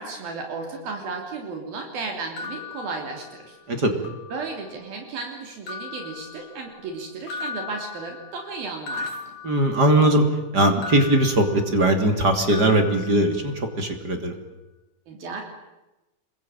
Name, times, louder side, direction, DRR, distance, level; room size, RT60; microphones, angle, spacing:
voice 1, 0.0-3.6 4.3-9.4 15.1-15.4, right 4 dB, 75° right, 3 dB, 4.9 m, -34 dB
sound 1, 2.4-3.6 4.0-4.8 5.7-6.9 7.3-10.2 10.8-12.2 12.5-13.8, left 5 dB, 55° left, 3.8 m, -38 dB
voice 2, 9.4-10.2 10.5-14.3, right 1 dB, 30° right, 5 dB, 3.0 m, -20 dB
28.0 x 22.0 x 9.0 m, 1.0 s
omnidirectional pair, 4.3 m